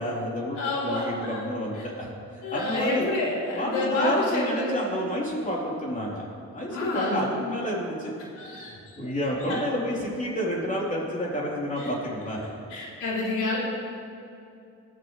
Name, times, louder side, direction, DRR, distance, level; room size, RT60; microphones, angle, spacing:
voice 1, 0.0-0.6 0.8-2.1 2.3-3.1 3.6-6.3 6.5-8.1 8.7-12.4, equal, 25° left, -4 dB, 3.9 m, -29 dB
voice 2, 0.5-1.4 1.8-1.9 2.4-4.8 6.7-7.2 8.4-8.7 9.0-9.1 9.5-9.6 11.8-11.9 12.7-13.6, left 2 dB, 85° left, -5 dB, 3.6 m, -28 dB
20.5 x 12.0 x 3.4 m, 2.6 s
cardioid pair, 90°, 30 cm